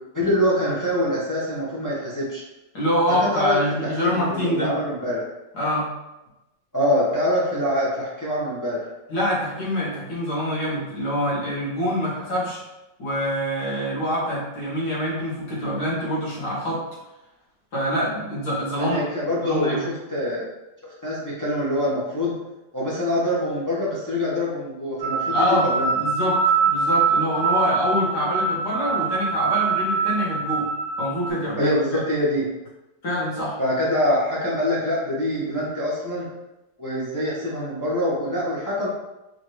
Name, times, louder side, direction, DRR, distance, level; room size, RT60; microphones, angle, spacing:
voice 1, 0.1-2.4 3.2-5.2 6.7-8.9 18.8-20.5 21.0-22.4 22.7-25.4 25.6-25.9 31.6-32.5 33.6-36.3 36.8-38.9, left 1 dB, 20° left, -7 dB, 0.5 m, -24 dB
voice 2, 2.7-4.7 5.5-5.9 9.1-12.6 13.0-16.8 17.7-19.0 19.4-19.8 25.3-25.7 25.9-30.7 31.0-31.8 33.0-33.6, equal, 60° left, -7 dB, 2.0 m, -25 dB
sound 1, 25.0-31.3, right 4 dB, 60° right, 0.8 m, -23 dB
4.2 x 2.9 x 3.2 m, 0.98 s
omnidirectional pair, 2.0 m